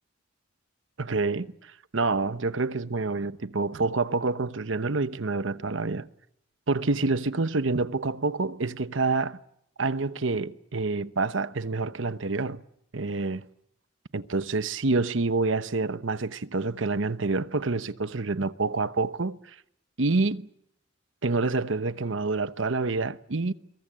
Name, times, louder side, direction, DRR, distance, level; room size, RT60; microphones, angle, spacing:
voice 1, 1.0-6.1 6.7-9.4 9.8-12.6 12.9-13.4 14.1-19.4 20.0-20.5 21.2-23.5, right 3 dB, 70° right, 1.0 m, -27 dB
25.0 x 23.5 x 7.5 m
head